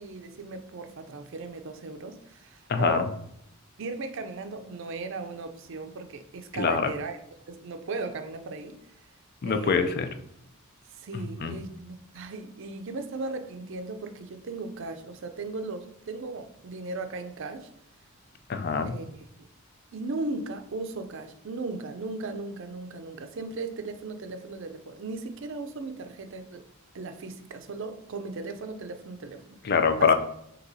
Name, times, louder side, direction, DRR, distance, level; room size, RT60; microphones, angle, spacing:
voice 1, 0.0-3.1 3.8-7.2 7.5-8.8 9.4-10.0 10.9-17.7 18.8-19.1 19.4-19.5 19.9-26.6 26.9-29.6 30.0-30.1, right 3 dB, 55° right, 8 dB, 0.5 m, -37 dB
voice 2, 2.7-3.1 6.5-6.9 9.4-10.1 11.4-11.6 18.5-19.0 29.6-30.1, left 5 dB, 45° left, 8 dB, 0.4 m, -24 dB
6.0 x 2.9 x 2.7 m, 0.76 s
head